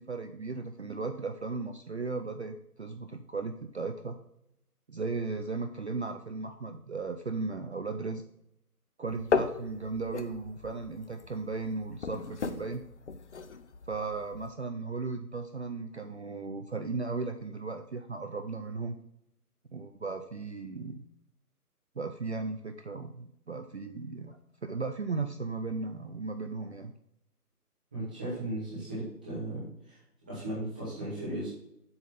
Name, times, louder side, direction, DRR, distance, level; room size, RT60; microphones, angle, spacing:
voice 1, 0.0-4.2 4.9-8.2 9.0-12.8 13.9-19.0 19.7-21.0 22.0-26.9, right 4 dB, 45° right, 7 dB, 0.5 m, -36 dB
sound 1, 9.1-14.5, left 5 dB, 50° left, 0.6 m, -36 dB
voice 2, 27.9-30.0 30.3-31.5, right 1 dB, 5° right, -9 dB, 0.8 m, -36 dB
7.6 x 4.1 x 5.5 m, 0.79 s
figure-of-eight pair, 160°, 47 cm